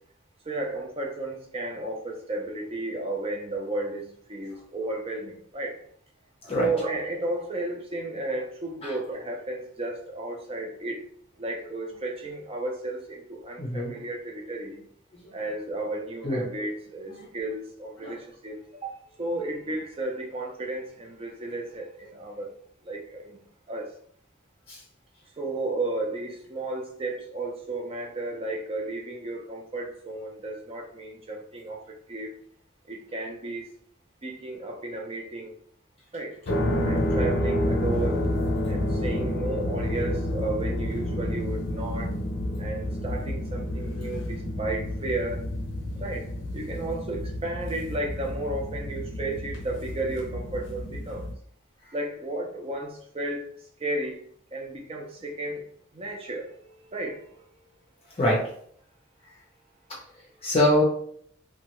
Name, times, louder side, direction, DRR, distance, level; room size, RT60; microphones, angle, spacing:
voice 1, 0.5-5.7 6.6-11.0 11.4-14.8 15.3-18.6 18.8-22.5 22.9-23.4 23.7-23.9 25.4-31.8 32.1-32.3 32.9-33.6 34.2-35.5 36.1-36.3 36.8-38.2 38.7-42.1 42.6-45.4 46.0-46.2 46.5-51.3 51.9-53.5 53.8-54.2 54.5-55.6 55.9-56.5 56.9-57.3, right 2 dB, 30° right, 1 dB, 0.5 m, -33 dB
voice 2, 13.6-13.9 15.3-15.4 16.2-16.4 18.0-18.1 24.7-24.8 58.2-58.4 60.4-60.8, left 1 dB, 30° left, -3 dB, 0.6 m, -23 dB
sound 1, 36.5-51.3, left 1 dB, 75° left, 0.6 m, -29 dB
2.9 x 2.2 x 2.9 m, 0.63 s
head